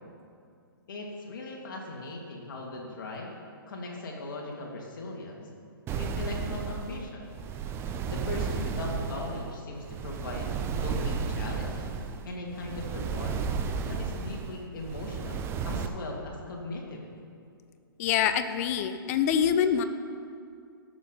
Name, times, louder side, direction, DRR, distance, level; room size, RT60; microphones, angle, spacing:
voice 1, 0.9-3.3 3.7-5.5 6.0-7.3 8.1-11.8 12.2-13.5 13.8-17.0, left 2 dB, 60° left, -1 dB, 2.6 m, -39 dB
sound 1, 5.9-15.9, right 5 dB, 20° right, 0.6 m, -33 dB
voice 2, 18.0-19.8, left 8 dB, 40° left, 10 dB, 0.7 m, -25 dB
17.5 x 7.4 x 4.1 m, 2.4 s
figure-of-eight pair, 120°, 12 cm